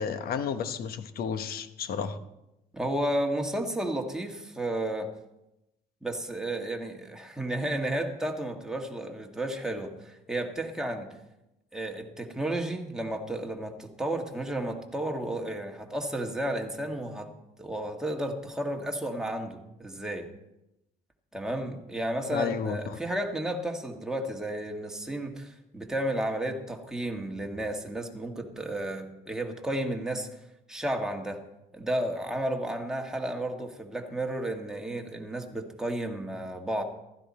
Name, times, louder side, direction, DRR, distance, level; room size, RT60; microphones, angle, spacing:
voice 1, 0.0-2.2 22.3-23.0, left 7 dB, 60° left, 10 dB, 1.1 m, -32 dB
voice 2, 2.7-5.1 6.0-11.1 11.7-17.3 17.6-20.3 21.3-30.3 30.7-31.4 31.7-36.8, right 1 dB, 5° right, 2 dB, 1.8 m, -32 dB
15.0 x 12.5 x 4.3 m, 0.90 s
cardioid pair, 110°, 17 cm